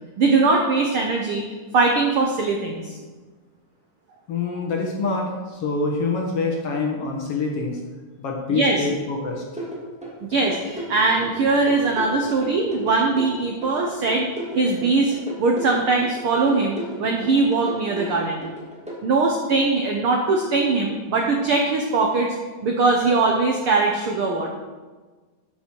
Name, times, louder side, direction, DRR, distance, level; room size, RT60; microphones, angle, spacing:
voice 1, 0.2-1.4 1.7-3.0 8.5-8.8 10.2-14.3 14.5-15.1 15.4-18.5 19.0-22.3 22.6-24.5, right 3 dB, 70° right, 1 dB, 1.3 m, -21 dB
voice 2, 4.3-7.8 8.2-9.4, left 3 dB, 55° left, 0 dB, 1.9 m, -25 dB
sound 1, 9.6-19.0, right 1 dB, 5° right, 1.6 m, -34 dB
12.0 x 7.2 x 4.6 m, 1.4 s
omnidirectional pair, 3.7 m